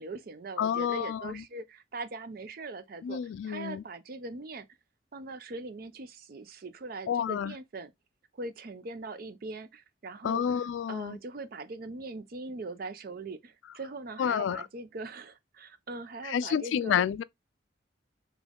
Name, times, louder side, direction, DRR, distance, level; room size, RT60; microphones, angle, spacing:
voice 1, 0.0-4.7 5.1-7.9 8.3-10.4 10.9-17.0, right 3 dB, 50° right, 0.5 m, -41 dB
voice 2, 0.6-1.4 3.0-3.8 7.1-7.5 10.2-11.2 14.2-14.6 16.2-17.2, left 8 dB, 85° left, 0.3 m, -29 dB
3.7 x 3.0 x 3.5 m
head